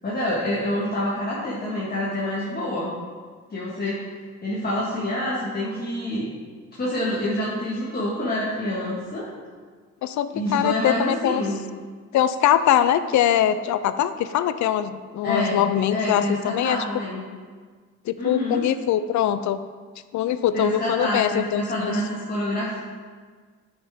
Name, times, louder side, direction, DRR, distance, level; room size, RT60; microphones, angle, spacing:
voice 1, 0.0-3.0 3.5-4.0 4.4-6.3 6.7-9.3 10.3-11.6 15.2-17.2 18.2-18.6 20.5-22.8, left 1 dB, 30° left, -6 dB, 1.7 m, -27 dB
voice 2, 10.0-11.4 12.1-16.8 18.1-19.6 20.1-22.0, left 10 dB, 70° left, 13 dB, 0.5 m, -22 dB
9.2 x 5.9 x 3.6 m, 1.5 s
cardioid pair, 90°, 30 cm